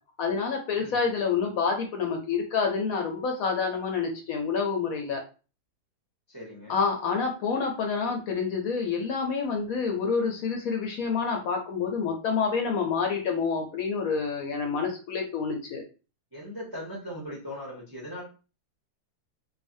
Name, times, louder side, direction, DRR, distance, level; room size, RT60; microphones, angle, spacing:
voice 1, 0.2-5.2 6.7-15.8, left 5 dB, 70° left, 2 dB, 0.9 m, -28 dB
voice 2, 6.3-6.8 16.3-18.2, equal, 25° right, -3 dB, 0.5 m, -39 dB
2.6 x 2.4 x 2.5 m, 0.33 s
omnidirectional pair, 1.7 m